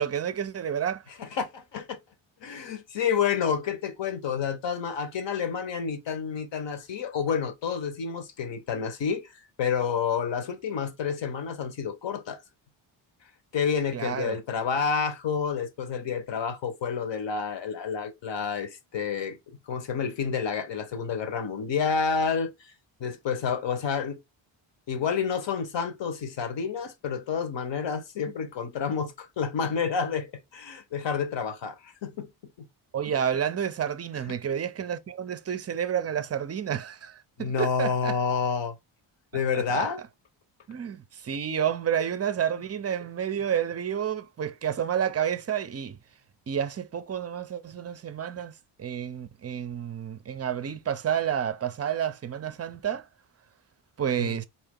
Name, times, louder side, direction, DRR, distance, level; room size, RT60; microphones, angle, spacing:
voice 1, 0.0-1.0 13.9-14.4 32.9-38.2 39.5-39.9 40.7-46.0 46.5-48.5 48.8-53.1 54.0-54.5, right 8 dB, 30° right, 0.5 m, -30 dB
voice 2, 1.2-2.0 2.4-9.3 9.6-12.4 13.5-22.5 23.0-24.2 24.9-32.3 32.6-32.7 34.3-34.4 37.4-38.8 39.3-40.0 54.2-54.4, left 6 dB, 60° left, 1.0 m, -29 dB
4.3 x 2.8 x 3.6 m
cardioid pair, 115°, 50 cm